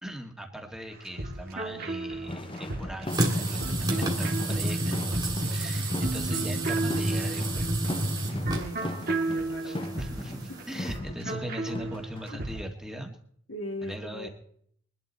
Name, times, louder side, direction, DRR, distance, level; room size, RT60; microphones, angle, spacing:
voice 1, 0.0-7.7 9.6-13.2 13.8-14.3, equal, 5° right, 3 dB, 1.8 m, -40 dB
sound 1, 0.9-12.6, right 2 dB, 45° right, 2.3 m, -35 dB
sound 2, 2.3-12.7, left 1 dB, 25° left, 0.7 m, -38 dB
sound 3, 3.1-11.0, right 1 dB, 20° right, 2.5 m, -30 dB
voice 2, 8.2-9.8 11.1-11.2 12.3-12.4 13.5-14.3, left 1 dB, 75° left, 3 dB, 2.8 m, -40 dB
22.5 x 12.0 x 4.2 m, 0.64 s
head